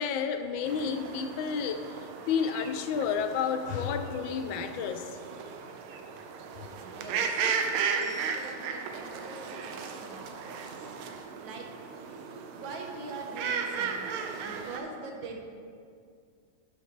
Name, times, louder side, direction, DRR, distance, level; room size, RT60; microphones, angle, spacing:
voice 1, 0.0-5.2, left 6 dB, 75° left, 8 dB, 1.2 m, -31 dB
sound 1, 0.6-14.8, right 6 dB, 85° right, 1.5 m, -36 dB
voice 2, 6.8-7.7 7.9-10.9 11.4-11.7 12.5-15.4, right 3 dB, 65° right, 1 dB, 1.7 m, -43 dB
Bell, 8.0-10.1, right 3 dB, 40° left, 1.8 m, -51 dB
11.5 x 6.3 x 3.2 m, 2.2 s
omnidirectional pair, 2.3 m